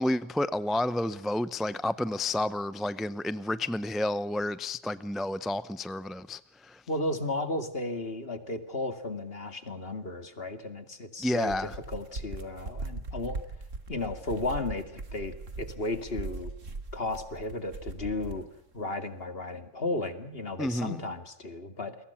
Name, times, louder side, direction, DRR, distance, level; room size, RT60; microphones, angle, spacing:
voice 1, 0.0-6.8 11.2-11.7 20.6-21.0, left 1 dB, ahead, 0.6 m, -30 dB
voice 2, 6.9-13.4 13.9-16.5 16.9-18.5 18.7-22.0, left 2 dB, 50° left, 2.6 m, -34 dB
sound 1, 11.3-18.5, right 3 dB, 85° right, 2.9 m, -40 dB
29.5 x 23.0 x 5.7 m
omnidirectional pair, 1.3 m